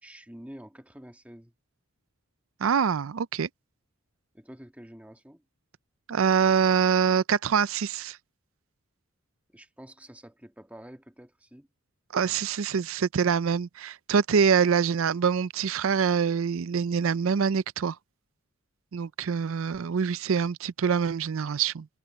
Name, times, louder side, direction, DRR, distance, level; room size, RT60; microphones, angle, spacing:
voice 1, 0.0-1.5 4.3-5.4 9.5-11.7, equal, 5° right, 1.5 m, -48 dB
voice 2, 2.6-3.5 6.1-8.2 12.1-18.0 18.9-21.9, right 6 dB, 70° right, 0.4 m, -25 dB
head